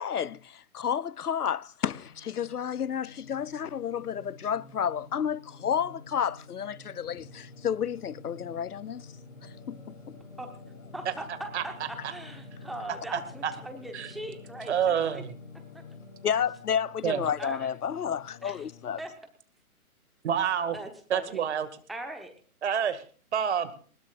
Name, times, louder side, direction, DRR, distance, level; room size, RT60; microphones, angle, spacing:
voice 1, 0.0-9.1 9.4-10.2 16.2-19.0, left 8 dB, 90° left, 0.6 m, -31 dB
Singing, 1.9-19.1, left 3 dB, 60° left, 4.0 m, -49 dB
voice 2, 10.9-15.2 15.7-15.8 17.4-17.7 18.4-18.6 19.0-19.1 20.7-21.4 21.9-22.3, right 1 dB, ahead, 0.9 m, -40 dB
voice 3, 13.1-13.5 13.9-14.1 14.7-15.3 17.0-17.2 20.2-20.8 21.1-21.7 22.6-23.0 23.3-23.7, right 8 dB, 50° right, 2.1 m, -27 dB
20.0 x 20.0 x 2.5 m
figure-of-eight pair, 135°, 44 cm